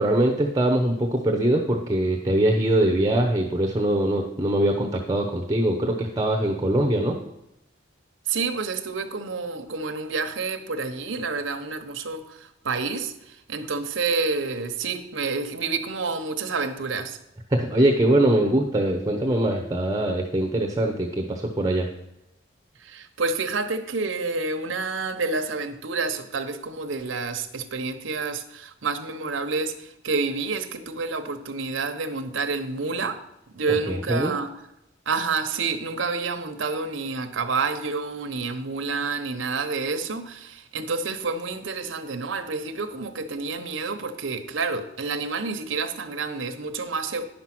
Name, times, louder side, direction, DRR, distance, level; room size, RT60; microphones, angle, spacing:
voice 1, 0.0-7.2 17.5-21.9 33.7-34.3, right 1 dB, 20° right, 2 dB, 0.9 m, -22 dB
voice 2, 8.3-17.2 22.8-33.2 33.5-34.5 35.1-47.3, right 4 dB, 90° right, 7 dB, 1.0 m, -29 dB
10.5 x 6.1 x 6.0 m, 0.85 s
head